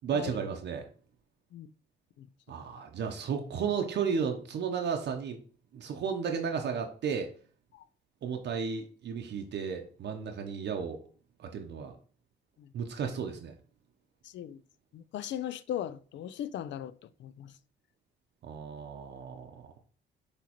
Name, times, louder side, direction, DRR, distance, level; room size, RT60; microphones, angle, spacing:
voice 1, 0.0-0.9 2.5-5.4 5.7-7.3 8.2-11.0 11.4-11.9 12.7-13.5 18.4-19.7, right 6 dB, 60° right, 0.7 m, -33 dB
voice 2, 14.2-14.6 14.9-17.5, left 11 dB, 65° left, 0.4 m, -38 dB
6.1 x 3.0 x 2.9 m
cardioid pair, 90°, 20 cm